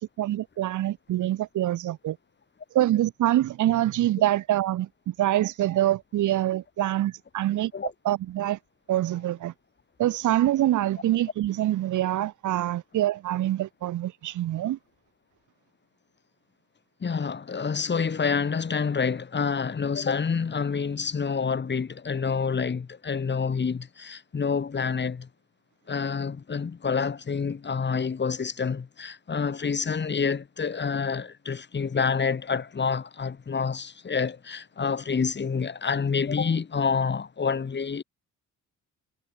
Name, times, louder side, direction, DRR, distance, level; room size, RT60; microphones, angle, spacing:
voice 1, 0.0-2.2 2.7-7.7 8.0-8.6 8.9-9.5 10.0-14.8, right 13 dB, 80° right, 2.4 m, -25 dB
voice 2, 17.0-25.3 25.9-38.0, left 5 dB, 35° left, 3.5 m, -28 dB
cardioid pair, 90°, 30 cm